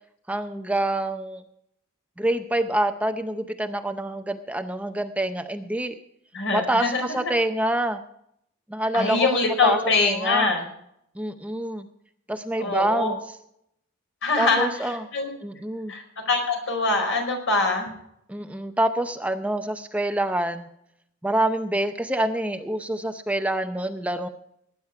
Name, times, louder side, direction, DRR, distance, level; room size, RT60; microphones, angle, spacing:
voice 1, 0.3-1.4 2.2-5.9 6.5-8.0 8.7-9.4 9.6-10.5 11.2-11.8 12.3-13.2 14.4-15.1 15.4-15.9 18.3-20.7 21.2-24.3, right 1 dB, 5° right, 7 dB, 0.6 m, -26 dB
voice 2, 6.3-7.2 8.9-10.7 12.6-13.1 14.2-15.3 15.9-17.9, left 3 dB, 65° left, 3 dB, 4.7 m, -24 dB
19.0 x 9.7 x 4.7 m, 0.72 s
head